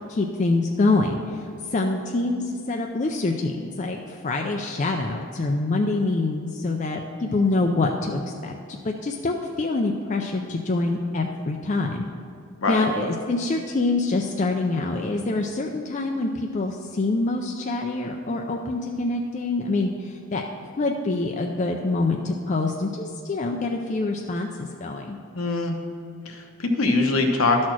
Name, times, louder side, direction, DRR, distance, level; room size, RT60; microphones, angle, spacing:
voice 1, 0.1-1.4 1.7-8.5 8.8-12.0 12.7-20.4 20.8-25.2, left 2 dB, 35° left, 2 dB, 0.4 m, -25 dB
voice 2, 25.3-25.8 26.2-27.7, left 3 dB, 70° left, 3 dB, 0.9 m, -23 dB
11.5 x 4.3 x 6.1 m, 2.3 s
head